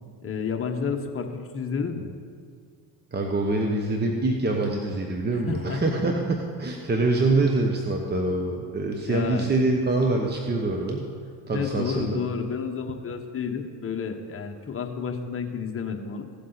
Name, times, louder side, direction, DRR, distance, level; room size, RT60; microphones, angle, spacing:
voice 1, 0.2-2.1 5.3-6.0 9.0-9.5 11.5-16.2, left 6 dB, 30° left, 3 dB, 1.3 m, -31 dB
voice 2, 3.1-11.1 11.5-12.2, right 2 dB, 20° right, 2 dB, 1.0 m, -25 dB
16.5 x 7.4 x 4.1 m, 2.1 s
supercardioid pair, 90°, 46 cm